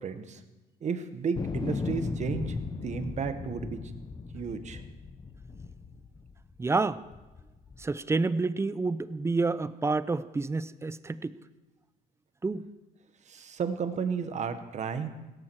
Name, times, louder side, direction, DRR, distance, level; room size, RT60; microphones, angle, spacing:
voice 1, 0.0-0.4 0.8-3.8 4.3-4.8 13.3-15.1, right 6 dB, 45° right, 9 dB, 1.4 m, -33 dB
sound 1, 1.4-6.6 7.1-7.9, left 4 dB, 25° left, 1.0 m, -36 dB
voice 2, 6.6-7.0 7.8-11.3 12.4-12.6, right 3 dB, 15° right, 15 dB, 0.6 m, -28 dB
17.0 x 13.5 x 4.7 m, 1.1 s
cardioid pair, 110°, 17 cm